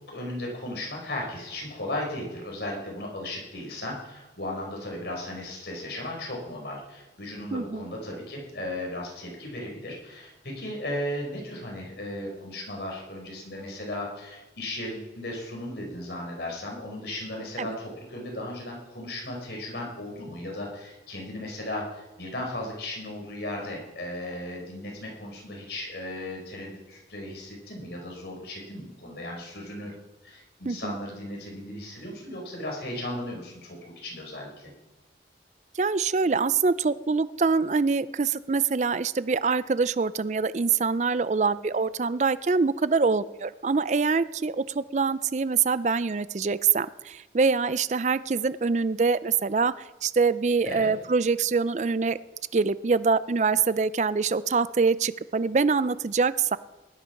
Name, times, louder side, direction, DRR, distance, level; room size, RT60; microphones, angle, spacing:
voice 1, 0.1-29.9 30.2-34.7 50.6-50.9, left 1 dB, 70° left, -1 dB, 4.8 m, -36 dB
voice 2, 7.5-7.8 17.6-17.8 30.7-30.9 35.8-49.7 50.0-52.2 52.5-56.6, right 4 dB, 40° right, 16 dB, 0.4 m, -24 dB
18.5 x 11.5 x 5.8 m, 1.0 s
head